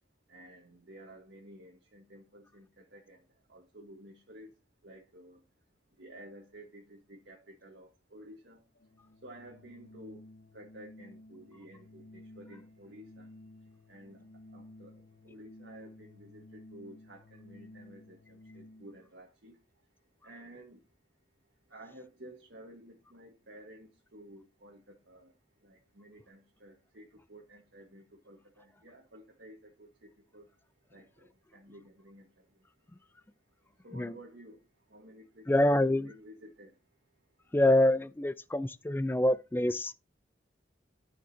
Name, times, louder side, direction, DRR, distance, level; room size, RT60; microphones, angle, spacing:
voice 1, 0.3-3.2 3.5-4.5 4.8-5.4 6.0-8.6 9.2-10.2 10.5-13.3 13.9-14.2 14.5-19.6 20.2-20.8 21.7-25.3 25.6-30.5 30.9-32.3 33.8-34.6 34.9-36.7, right 1 dB, 80° right, 1.6 m, -52 dB
Organ, 8.8-19.1, left 1 dB, 60° left, 0.8 m, -54 dB
voice 2, 35.5-36.1 37.5-39.9, left 1 dB, 10° left, 0.3 m, -26 dB
13.0 x 5.1 x 2.8 m
head